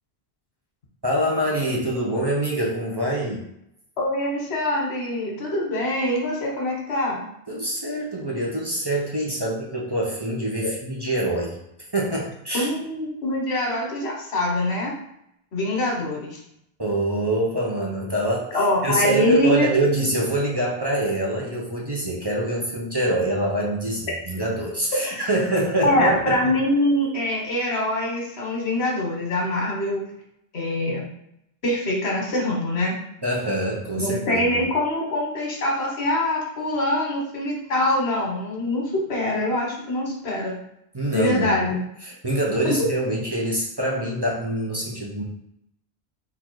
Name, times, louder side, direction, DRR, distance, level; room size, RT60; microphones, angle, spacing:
voice 1, 1.0-3.5 7.5-11.6 11.9-12.7 16.8-18.5 18.8-26.5 33.2-34.4 40.9-41.5 42.0-45.2, right 1 dB, 25° right, -3 dB, 0.7 m, -25 dB
voice 2, 4.0-7.2 12.5-14.9 15.5-16.4 18.5-19.7 25.8-30.1 30.5-31.0 31.6-32.9 34.0-40.6 41.1-41.8, left 1 dB, 90° left, -2 dB, 1.4 m, -24 dB
4.0 x 2.7 x 4.6 m, 0.79 s
omnidirectional pair, 1.0 m